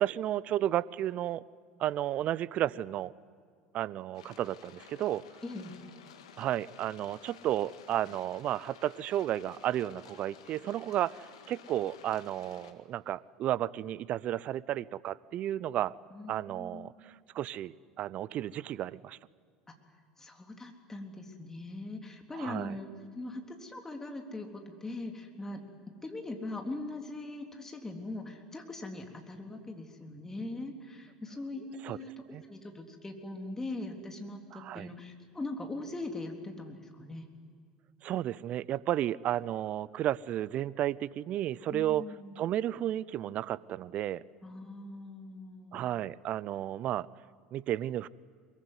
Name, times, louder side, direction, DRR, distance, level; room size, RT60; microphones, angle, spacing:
voice 1, 0.0-1.4 1.8-3.1 3.7-5.2 6.4-15.9 16.3-19.2 22.3-22.7 31.8-32.0 32.3-32.4 34.5-34.9 38.0-42.1 42.4-44.2 45.7-47.1 47.5-48.1, right 12 dB, 45° right, 22 dB, 0.6 m, -33 dB
sound 1, 4.1-12.7, left 8 dB, 70° left, 2.0 m, -54 dB
voice 2, 5.4-5.8 16.1-17.1 20.2-22.9 23.1-25.6 26.0-37.3 41.7-42.4 44.4-45.9, left 2 dB, 15° left, 3 dB, 3.7 m, -41 dB
23.5 x 22.5 x 9.7 m, 2.1 s
figure-of-eight pair, 75°, 3 cm